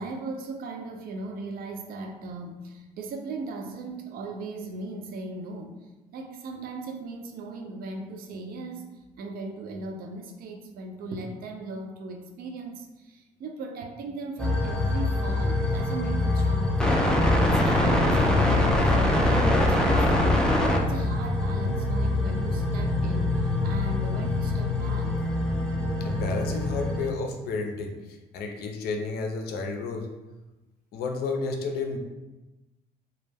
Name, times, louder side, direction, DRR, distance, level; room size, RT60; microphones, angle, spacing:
voice 1, 0.0-8.9 9.2-25.2, right 3 dB, 60° right, 4 dB, 0.4 m, -38 dB
sound 1, 14.4-27.1, left 2 dB, 5° left, 0.3 m, -24 dB
voice 2, 26.0-30.1 30.9-32.0, left 3 dB, 70° left, 2 dB, 0.5 m, -31 dB
2.2 x 2.1 x 3.3 m, 1.1 s
cardioid pair, 110°, 17 cm